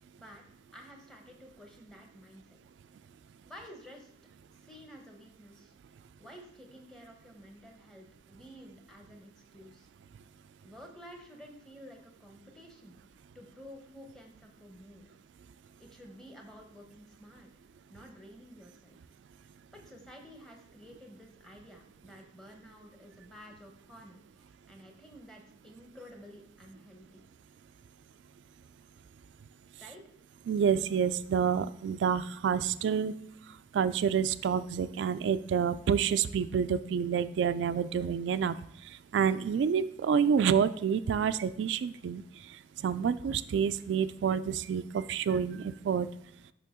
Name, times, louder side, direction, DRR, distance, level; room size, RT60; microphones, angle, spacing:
voice 1, 0.7-2.6 3.5-4.1 4.6-5.7 6.2-9.9 10.6-13.0 13.3-15.1 15.8-17.5 17.9-19.1 19.7-27.2 29.8-30.0, equal, 5° left, 2 dB, 0.9 m, -52 dB
voice 2, 30.5-33.1 33.7-38.6 38.8-42.2 42.5-46.1, right 7 dB, 85° right, 12 dB, 0.3 m, -28 dB
6.7 x 5.6 x 3.6 m, 0.74 s
head